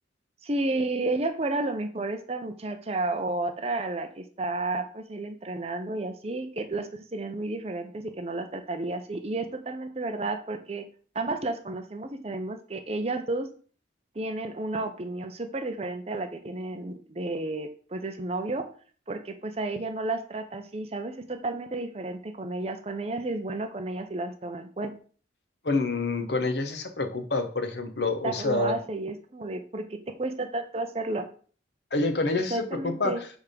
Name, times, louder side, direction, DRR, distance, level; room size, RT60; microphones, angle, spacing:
voice 1, 0.4-10.8 11.1-13.5 14.1-18.7 19.1-24.9 28.2-31.3 32.5-33.2, right 2 dB, 35° right, 7 dB, 0.7 m, -32 dB
voice 2, 25.6-28.8 31.9-33.1, left 3 dB, 65° left, 6 dB, 1.0 m, -27 dB
6.4 x 3.6 x 5.1 m, 0.43 s
head